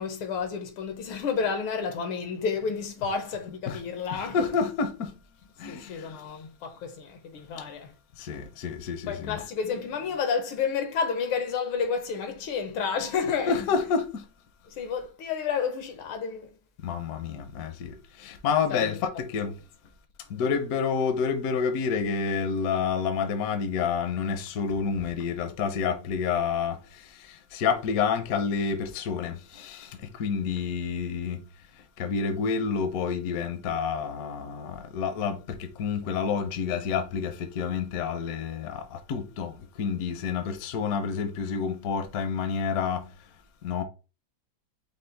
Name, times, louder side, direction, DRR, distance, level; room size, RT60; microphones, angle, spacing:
voice 1, 0.0-4.6 5.7-7.9 9.1-13.9 14.7-16.5 18.7-19.0, left 6 dB, 85° left, 1.8 m, -31 dB
voice 2, 4.1-5.1 5.6-5.9 8.3-9.4 13.5-14.0 16.8-17.7 18.2-19.5 20.3-26.7 27.5-29.9 30.2-31.4 32.0-35.4 35.8-38.8 39.1-39.5 39.8-43.0 43.6-43.8, left 6 dB, 65° left, 0.9 m, -28 dB
5.4 x 2.0 x 4.0 m
omnidirectional pair, 2.3 m